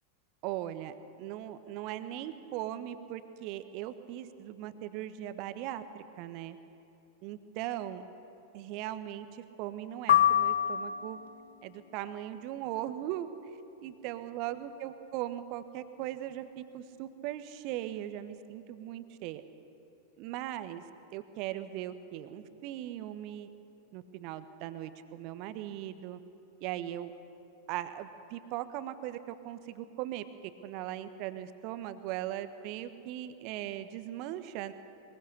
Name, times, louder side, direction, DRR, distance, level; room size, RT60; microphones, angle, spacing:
voice 1, 0.4-6.6 7.2-8.0 8.5-11.2 11.6-13.3 13.8-19.4 20.2-20.8 21.1-23.5 23.9-26.2 26.6-27.1 27.7-30.2 30.6-34.7, right 12 dB, 45° right, 11 dB, 1.2 m, -39 dB
sound 1, 10.1-11.4, left 11 dB, 60° left, 0.5 m, -25 dB
22.5 x 21.5 x 6.7 m, 2.7 s
figure-of-eight pair, 90°, 0 cm